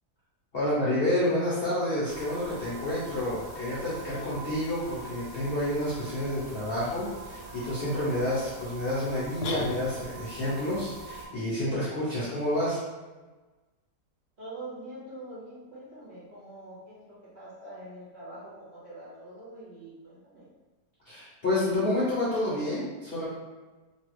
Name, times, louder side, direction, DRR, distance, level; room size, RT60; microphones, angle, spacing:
voice 1, 0.5-12.8 21.1-23.3, left 1 dB, 50° left, -9 dB, 0.7 m, -29 dB
sound 1, 2.1-11.3, right 2 dB, 65° right, 1.1 m, -43 dB
sound 2, 9.4-10.3, left 3 dB, 75° left, 1.1 m, -34 dB
voice 2, 14.4-20.5, right 1 dB, 45° right, -9 dB, 1.0 m, -44 dB
3.0 x 2.4 x 3.0 m, 1.2 s
omnidirectional pair, 1.8 m